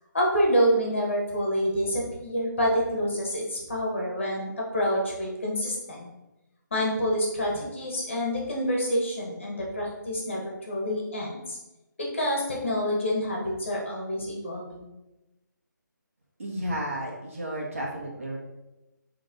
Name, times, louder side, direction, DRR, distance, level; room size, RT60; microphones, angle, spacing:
voice 1, 0.1-6.1 6.7-11.6 12.0-14.9, equal, 35° left, -2 dB, 2.1 m, -27 dB
voice 2, 16.4-18.4, right 1 dB, 45° right, -4 dB, 2.1 m, -32 dB
8.8 x 4.0 x 5.6 m, 1.0 s
hypercardioid pair, 180°, 11 cm